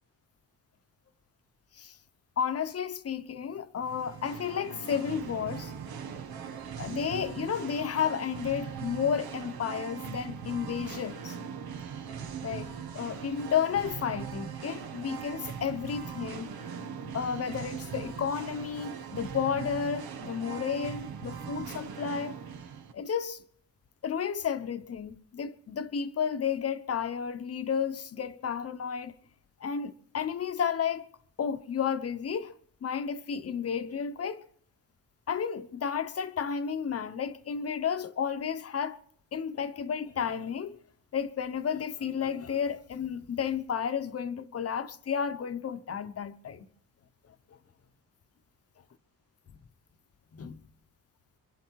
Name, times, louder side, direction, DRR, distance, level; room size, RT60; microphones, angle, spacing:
voice 1, 2.4-5.7 6.8-11.4 12.2-12.7 12.9-16.5 17.1-22.4 22.9-23.4 24.0-29.1 29.6-31.1 31.4-32.5 32.8-34.4 35.3-39.0 39.3-40.8 41.1-46.7 50.3-50.6, left 7 dB, 40° left, 1.0 m, -32 dB
Singing, 3.8-22.9, right 7 dB, 90° right, 1.8 m, -40 dB
25.5 x 11.5 x 4.7 m
cardioid pair, 135°, 36 cm